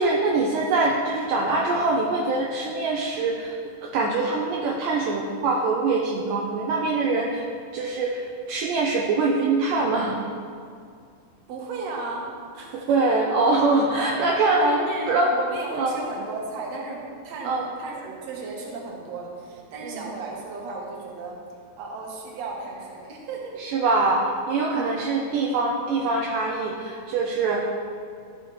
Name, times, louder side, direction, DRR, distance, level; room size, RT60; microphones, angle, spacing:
voice 1, 0.0-3.6 3.8-7.5 7.7-10.2 12.7-15.4 15.7-16.0 17.4-17.7 19.8-20.0 23.6-27.7, right 3 dB, 80° right, -1 dB, 2.0 m, -23 dB
voice 2, 11.5-12.3 12.5-13.1 13.9-14.3 14.6-21.4 21.8-23.6 24.7-25.0, right 3 dB, 60° right, -2 dB, 2.0 m, -35 dB
14.0 x 5.7 x 3.2 m, 2.3 s
omnidirectional pair, 4.4 m